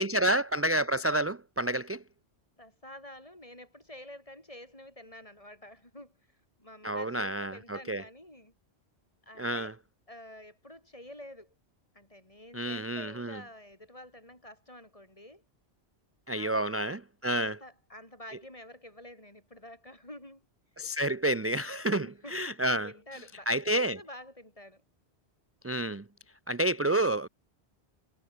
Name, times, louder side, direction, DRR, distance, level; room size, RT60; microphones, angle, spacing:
voice 1, 0.0-2.0 6.8-8.0 9.4-9.7 12.5-13.4 16.3-17.6 20.8-22.9 23.5-24.0 25.6-26.0 26.5-27.3, right 1 dB, 20° right, 0.4 m, -29 dB
voice 2, 2.6-6.2 6.6-8.5 9.2-9.7 10.1-11.5 11.9-15.4 16.3-17.0 17.3-20.4 22.0-24.8, left 1 dB, 30° left, 6.0 m, -49 dB
omnidirectional pair, 1.2 m